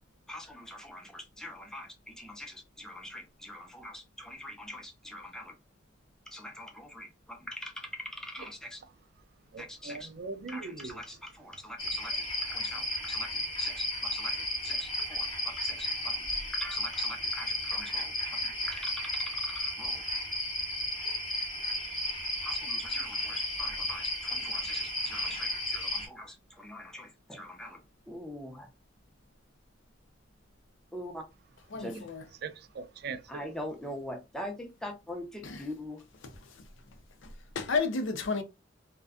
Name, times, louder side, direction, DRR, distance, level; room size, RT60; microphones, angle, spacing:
voice 1, 0.3-5.6 6.3-8.8 9.6-10.1 10.5-16.3 16.5-20.0 22.4-28.7 30.9-31.2 31.7-32.1 33.3-36.0, left 1 dB, 5° left, 0.5 m, -43 dB
voice 2, 9.5-11.0 32.4-33.4, right 4 dB, 55° right, 0.3 m, -40 dB
sound 1, 11.8-26.1, left 1 dB, 25° left, 0.8 m, -33 dB
voice 3, 31.7-32.2 35.5-35.6 37.2-38.4, left 4 dB, 85° left, 0.6 m, -31 dB
2.5 x 2.2 x 2.3 m
head